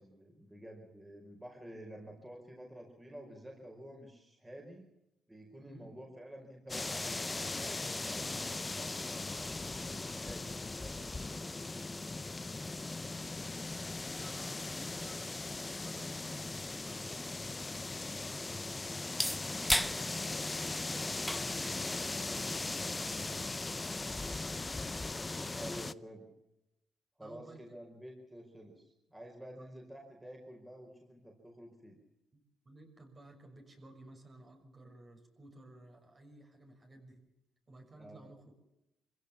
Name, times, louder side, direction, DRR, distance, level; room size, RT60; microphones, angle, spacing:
voice 1, 0.0-4.9 5.3-9.0 9.3-11.9 25.5-26.3 27.2-32.0 38.0-38.3, right 1 dB, 15° right, 0 dB, 5.2 m, -50 dB
sound 1, 6.7-25.9, left 3 dB, 20° left, 0.7 m, -39 dB
voice 2, 13.0-13.4 14.2-18.7 19.5-23.5 23.8-25.7 27.2-27.6 29.6-29.7 32.3-37.2 37.7-38.5, right 2 dB, 35° right, 3 dB, 6.5 m, -55 dB
sound 2, 19.0-24.7, equal, 5° left, 1.0 m, -41 dB
25.0 x 16.0 x 7.4 m, 0.87 s
cardioid pair, 90°, 0 cm